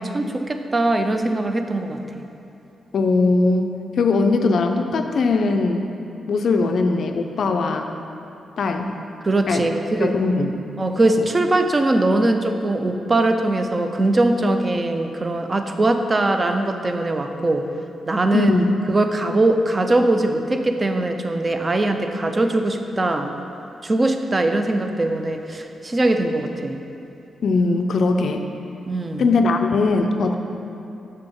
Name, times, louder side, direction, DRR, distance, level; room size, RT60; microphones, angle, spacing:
voice 1, 0.0-2.3 9.2-10.1 10.8-17.6 18.1-18.5 18.9-23.3 23.8-26.8 28.9-29.3 30.3-30.4, right 2 dB, 20° right, 6 dB, 0.3 m, -21 dB
voice 2, 2.9-5.8 6.3-7.9 8.6-9.0 9.5-9.7 10.0-10.5 11.2-11.3 18.3-18.7 27.4-28.4 29.2-30.4, left 3 dB, 55° left, 5 dB, 0.3 m, -20 dB
6.6 x 3.5 x 5.2 m, 2.8 s
wide cardioid pair, 155°, 0 cm